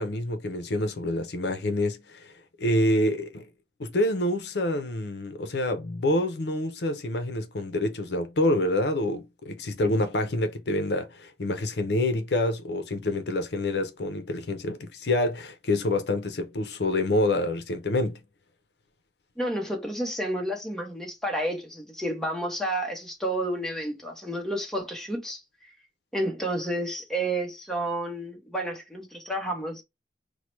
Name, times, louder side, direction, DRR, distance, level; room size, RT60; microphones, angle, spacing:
voice 1, 0.0-2.3 2.6-3.5 3.8-18.2, left 1 dB, 70° left, 0.6 m, -27 dB
voice 2, 19.4-25.4 26.1-29.8, right 1 dB, 5° left, 0.8 m, -30 dB
4.6 x 2.1 x 3.0 m
head